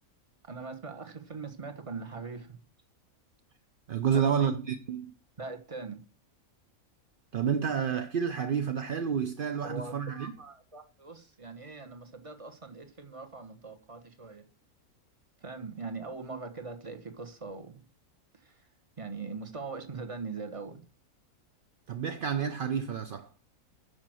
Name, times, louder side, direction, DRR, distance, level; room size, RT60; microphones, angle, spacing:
voice 1, 0.4-2.6 4.1-4.5 5.4-6.0 9.6-14.4 15.4-17.8 18.3-18.6 19.0-20.8, right 4 dB, 25° right, 1.2 m, -41 dB
voice 2, 3.9-5.1 7.3-10.3 21.9-23.3, right 7 dB, 55° right, 0.6 m, -29 dB
9.7 x 5.9 x 6.1 m
omnidirectional pair, 1.5 m